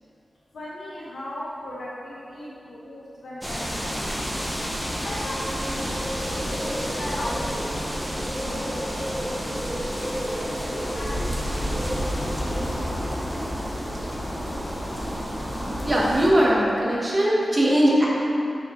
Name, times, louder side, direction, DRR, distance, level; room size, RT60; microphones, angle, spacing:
voice 1, 0.5-4.1 5.0-7.6 8.3-8.8 9.2-9.6 10.1-11.7, equal, 80° left, -7 dB, 0.9 m, -37 dB
sound 1, 3.4-16.3, equal, ahead, 0.8 m, -29 dB
voice 2, 15.8-18.1, equal, 30° right, -5 dB, 1.2 m, -20 dB
6.5 x 4.9 x 3.1 m, 2.5 s
wide cardioid pair, 90°, 0 cm